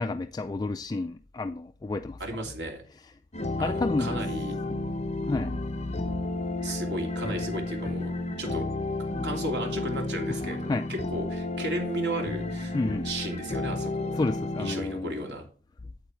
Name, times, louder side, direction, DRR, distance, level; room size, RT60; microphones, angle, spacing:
voice 1, 0.0-2.2 3.6-4.2 5.2-5.6 10.3-10.4 10.7-10.9 12.7-13.1 14.1-15.3, left 2 dB, 20° left, 0.3 m, -30 dB
voice 2, 2.2-2.8 3.6-4.6 6.6-8.1 8.4-8.6 9.2-12.8 13.0-14.2 14.6-15.4, right 1 dB, 80° right, 2.8 m, -34 dB
sound 1, 3.3-14.8, left 2 dB, 40° left, 0.8 m, -32 dB
9.0 x 7.8 x 3.2 m
head